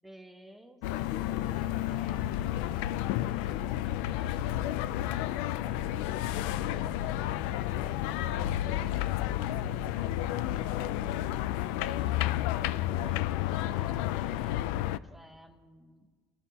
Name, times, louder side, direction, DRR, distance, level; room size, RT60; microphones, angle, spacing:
voice 1, 0.0-6.1 6.6-11.0 11.8-16.1, right 1 dB, 5° right, 5 dB, 1.1 m, -55 dB
Farmer's Market (With commentary), 0.8-15.0, left 13 dB, 90° left, 0.4 m, -31 dB
26.5 x 14.0 x 2.9 m, 1.6 s
cardioid pair, 155°, 6 cm